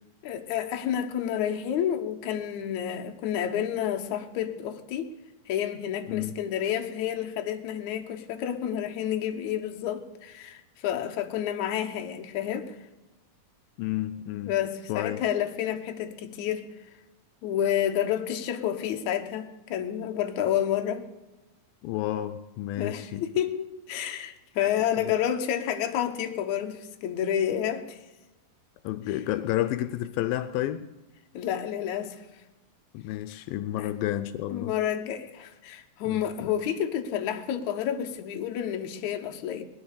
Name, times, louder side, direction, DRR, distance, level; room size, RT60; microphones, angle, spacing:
voice 1, 0.2-5.1 5.5-12.8 14.5-16.7 17.4-21.1 22.8-28.0 31.3-32.2 33.8-33.9 34.5-39.6, left 10 dB, 65° left, 2.3 m, -29 dB
voice 2, 6.1-6.4 13.8-14.6 14.9-15.2 21.8-23.3 25.0-25.1 28.8-30.9 32.9-34.8 36.0-36.5, left 13 dB, 85° left, 2.4 m, -31 dB
19.5 x 11.0 x 6.8 m
omnidirectional pair, 4.2 m